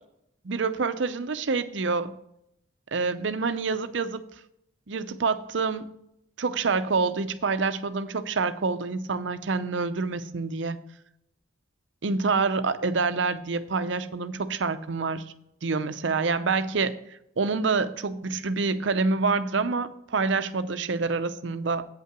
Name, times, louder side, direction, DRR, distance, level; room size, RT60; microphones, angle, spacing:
voice 1, 0.4-2.1 2.9-4.2 4.9-5.9 6.4-10.8 12.0-15.2 15.6-16.9 17.4-21.8, right 4 dB, 75° right, 11 dB, 0.6 m, -27 dB
8.4 x 5.6 x 6.0 m, 0.77 s
head